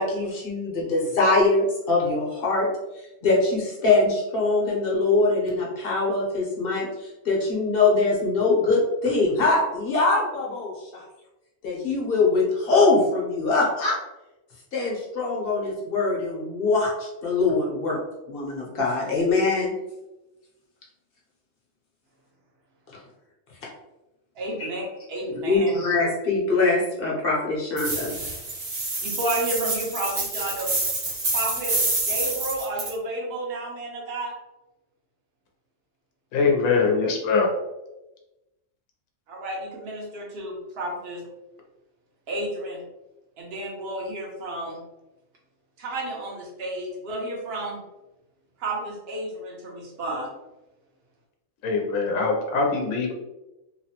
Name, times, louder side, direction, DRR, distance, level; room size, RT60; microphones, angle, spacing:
voice 1, 0.0-2.7 3.2-11.0 11.6-14.0 14.7-18.0 18.3-19.7 24.6-24.7 25.5-28.1, left 3 dB, 50° left, -3 dB, 1.0 m, -23 dB
voice 2, 24.3-24.8 25.1-25.7 29.0-30.7 31.3-31.7 32.0-34.3 39.3-41.2 42.3-42.8 43.4-44.8 45.8-47.8 48.6-50.3, right 1 dB, 55° right, -3 dB, 1.0 m, -31 dB
sound 1, 27.8-32.9, right 2 dB, 80° right, 1.4 m, -27 dB
voice 3, 36.3-37.5 51.6-53.1, left 4 dB, 80° left, 0 dB, 1.0 m, -22 dB
3.0 x 2.1 x 2.8 m, 0.99 s
omnidirectional pair, 1.4 m